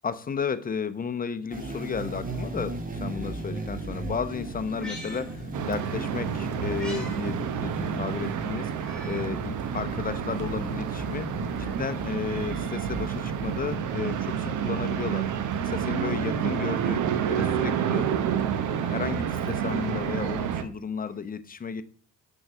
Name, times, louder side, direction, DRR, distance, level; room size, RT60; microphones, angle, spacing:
voice 1, 0.0-11.3 11.6-18.1 18.7-21.8, left 6 dB, 30° left, 0.7 m, -33 dB
sound 1, 1.5-13.8, right 2 dB, 30° right, 1.7 m, -36 dB
Meow, 4.6-6.0 6.3-7.2 7.6-7.7 8.7-9.4 9.9-10.0 11.0-12.0 13.5-14.5 15.9-16.7 18.2-19.8 21.1-21.2, left 1 dB, 5° left, 2.3 m, -47 dB
sound 2, 5.5-20.6, right 8 dB, 75° right, 0.9 m, -29 dB
6.3 x 4.9 x 6.0 m
cardioid pair, 90°, 30 cm